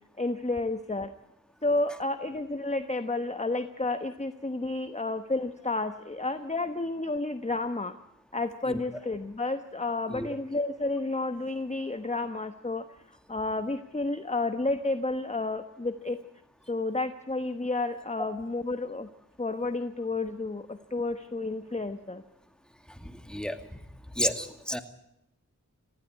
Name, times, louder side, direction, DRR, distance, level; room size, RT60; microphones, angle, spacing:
voice 1, 0.2-1.1 1.6-8.0 8.3-16.2 16.7-19.1 19.4-22.2 24.4-24.5, left 2 dB, 20° left, 9 dB, 1.2 m, -31 dB
voice 2, 22.9-23.8 24.1-24.8, equal, 5° left, 7 dB, 2.3 m, -32 dB
20.0 x 15.5 x 9.5 m, 0.83 s
cardioid pair, 40°, 32 cm